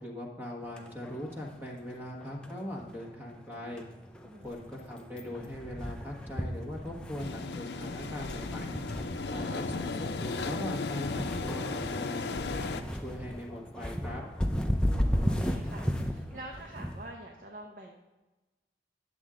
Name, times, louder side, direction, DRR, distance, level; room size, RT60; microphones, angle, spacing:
voice 1, 0.0-3.8 4.4-8.7 9.3-14.2, left 1 dB, 10° right, -2 dB, 1.4 m, -40 dB
sound 1, 0.6-17.1, equal, 5° left, 0.5 m, -36 dB
sound 2, 7.2-12.8, left 4 dB, 70° left, 0.5 m, -35 dB
voice 2, 14.9-17.9, right 1 dB, 50° right, 1 dB, 0.8 m, -47 dB
9.9 x 7.1 x 3.7 m, 1.1 s
head